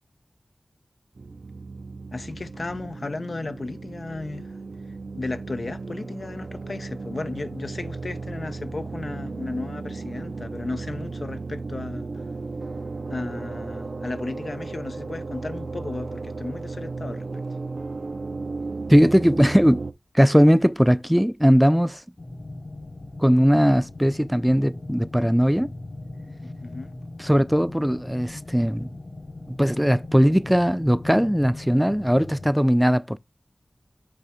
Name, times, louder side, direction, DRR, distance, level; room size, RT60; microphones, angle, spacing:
sound 1, 1.1-19.9, right 3 dB, 70° right, 0.6 m, -35 dB
voice 1, 2.1-4.5 5.1-12.2 13.1-17.4 26.4-26.9, left 3 dB, 65° left, 0.6 m, -34 dB
voice 2, 18.9-19.8 20.1-22.0 23.2-25.7 27.2-28.9 29.5-33.2, equal, 5° right, 0.4 m, -19 dB
sound 2, 22.2-32.5, left 2 dB, 45° left, 1.1 m, -39 dB
8.4 x 3.3 x 5.0 m
cardioid pair, 45°, 0 cm